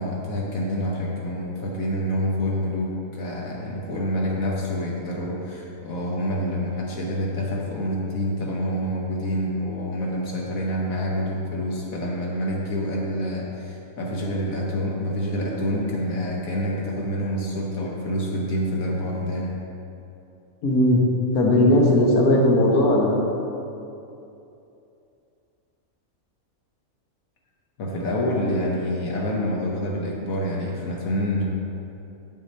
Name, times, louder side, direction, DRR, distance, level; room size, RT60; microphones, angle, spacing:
voice 1, 0.0-19.6 27.8-31.4, equal, 70° left, -3 dB, 1.3 m, -27 dB
voice 2, 20.6-21.1 21.3-23.1, left 1 dB, 90° left, -1 dB, 1.6 m, -17 dB
7.3 x 6.1 x 4.3 m, 2.8 s
omnidirectional pair, 1.5 m